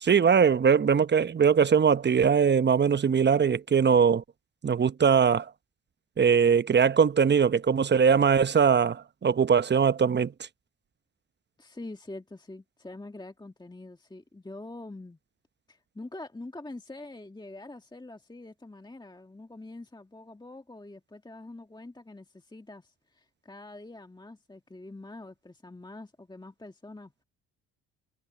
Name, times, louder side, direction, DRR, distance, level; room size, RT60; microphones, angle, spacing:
voice 1, 0.0-4.2 4.6-5.5 6.2-10.3, right 6 dB, 30° right, 0.8 m, -21 dB
voice 2, 11.6-15.2 15.7-27.2, left 2 dB, 10° left, 1.7 m, -45 dB
supercardioid pair, 60°, 36 cm